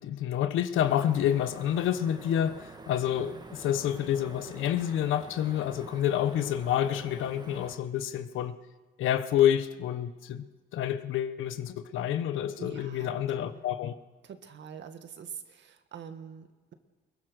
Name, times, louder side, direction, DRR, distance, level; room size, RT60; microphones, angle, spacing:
voice 1, 0.0-8.5 9.0-10.4 10.7-14.0, left 10 dB, 85° left, 11 dB, 1.2 m, -28 dB
sound 1, 0.7-7.8, right 2 dB, 20° right, 1.9 m, -47 dB
voice 2, 12.6-13.1 13.4-13.6 14.2-16.7, right 7 dB, 65° right, 8 dB, 2.0 m, -45 dB
22.5 x 20.0 x 6.4 m, 1.3 s
cardioid pair, 90°, 20 cm